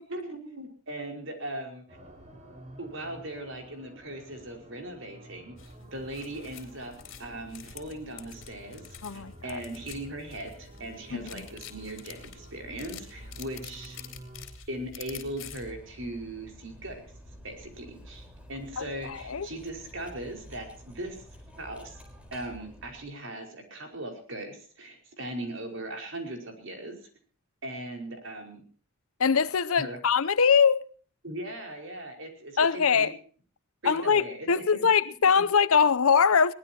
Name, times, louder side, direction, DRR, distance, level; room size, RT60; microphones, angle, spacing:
voice 1, 0.1-2.0 2.8-6.9 7.2-14.0 14.7-17.0 17.4-21.2 21.6-22.0 22.3-27.1 27.6-28.6 29.8-30.0 31.2-33.1 33.8-34.9 35.4-35.5, right 1 dB, 60° right, 5.2 m, -39 dB
sound 1, 1.9-14.5, right 1 dB, 30° right, 5.0 m, -51 dB
sound 2, 5.6-15.7, left 5 dB, 60° left, 3.8 m, -47 dB
voice 2, 9.0-9.6 11.1-11.3 18.8-19.5 29.2-30.9 32.6-33.1 33.8-36.5, left 6 dB, 80° left, 0.7 m, -23 dB
Cutlery silverware, 15.4-23.2, equal, 5° right, 4.2 m, -50 dB
22.0 x 19.0 x 2.9 m
head